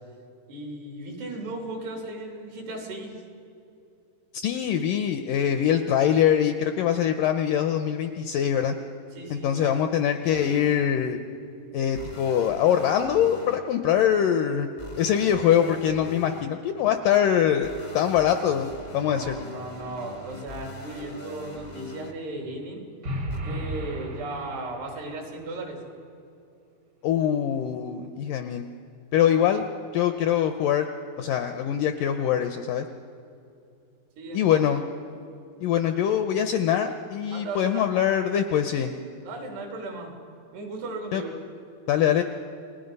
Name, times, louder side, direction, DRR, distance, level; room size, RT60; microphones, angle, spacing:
voice 1, 0.5-3.2 9.1-9.8 19.0-22.9 23.4-25.8 34.2-34.8 37.3-37.9 39.2-40.1 40.5-41.4, right 2 dB, 80° right, 1 dB, 5.2 m, -36 dB
voice 2, 4.3-8.7 9.3-11.2 11.7-14.7 15.0-19.4 27.0-28.6 29.1-29.7 29.9-30.9 31.2-32.9 34.3-34.8 35.6-38.9 41.1-41.2 41.9-42.2, left 9 dB, 85° left, 7 dB, 1.9 m, -23 dB
sound 1, 10.3-10.7 11.9-13.6 14.8-16.4 17.6-22.1 23.3-23.4, equal, 30° left, 0.5 m, -42 dB
sound 2, 23.0-25.1, right 1 dB, 50° right, 1.2 m, -33 dB
29.5 x 20.0 x 5.4 m, 2.6 s
omnidirectional pair, 4.7 m